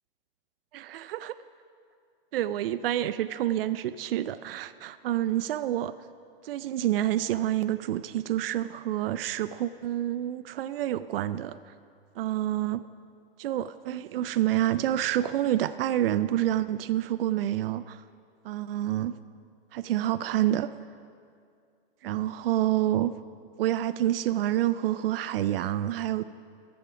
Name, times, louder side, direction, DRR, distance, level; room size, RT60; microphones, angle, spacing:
voice 1, 0.7-1.4 2.3-5.9 6.4-11.6 12.2-12.8 13.4-18.0 18.4-19.2 19.7-20.7 22.0-23.1 23.6-26.2, right 12 dB, 70° right, 13 dB, 0.4 m, -28 dB
14.0 x 7.3 x 5.8 m, 2.3 s
hypercardioid pair, 140°, 29 cm